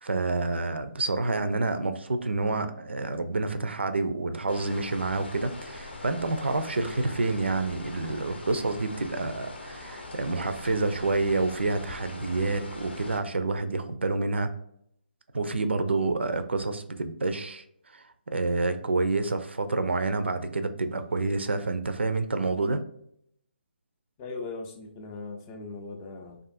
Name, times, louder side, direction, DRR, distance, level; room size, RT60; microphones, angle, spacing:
voice 1, 0.0-14.5 15.3-17.6 17.9-18.0 18.3-22.8, right 3 dB, 80° right, 9 dB, 0.4 m, -28 dB
sound 1, 4.5-13.2, left 2 dB, 75° left, 0.7 m, -42 dB
voice 2, 24.2-26.4, left 3 dB, 20° left, 2 dB, 0.4 m, -39 dB
2.5 x 2.4 x 2.4 m, 0.71 s
figure-of-eight pair, 145°, 6 cm